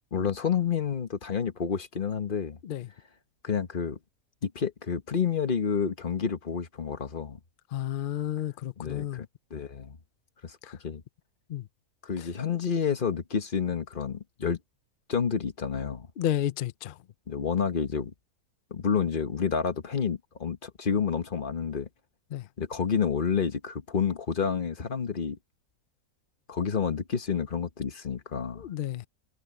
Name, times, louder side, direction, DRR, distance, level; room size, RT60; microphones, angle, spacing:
voice 1, 0.1-2.6 3.4-4.0 4.4-7.4 8.8-10.0 10.4-11.0 12.0-14.6 15.1-16.1 17.3-18.1 18.7-21.9 22.6-25.4 26.5-28.7, left 6 dB, 40° left, 1.2 m, -29 dB
voice 2, 7.7-9.2 10.7-10.8 11.5-11.6 16.2-16.9 22.3-22.4 28.6-29.1, left 11 dB, 60° left, 0.5 m, -31 dB
omnidirectional pair, 1.6 m